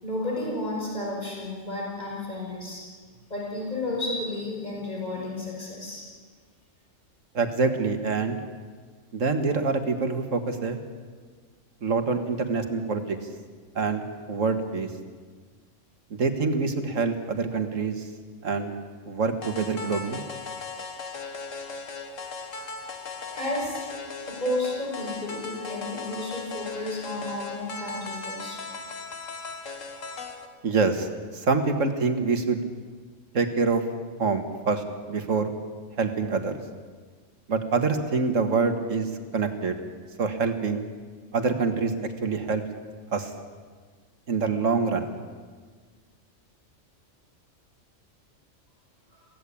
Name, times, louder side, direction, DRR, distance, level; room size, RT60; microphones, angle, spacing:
voice 1, 0.0-2.8 3.3-6.0 22.6-22.7 23.2-23.8 24.2-28.6 49.1-49.2, left 1 dB, 35° left, -3 dB, 5.8 m, -32 dB
voice 2, 7.3-8.4 9.1-10.8 11.8-13.2 13.8-14.9 16.1-18.1 18.4-18.7 19.1-20.2 30.6-31.1 31.3-32.6 33.3-33.8 34.2-35.5 36.0-36.5 37.5-39.8 40.2-40.8 41.3-41.9 42.2-42.6 43.1-43.3 44.3-45.1, right 4 dB, 80° right, 7 dB, 2.1 m, -26 dB
sound 1, 19.4-30.5, left 4 dB, 85° left, 2.0 m, -38 dB
23.0 x 16.5 x 8.5 m, 1.5 s
omnidirectional pair, 1.3 m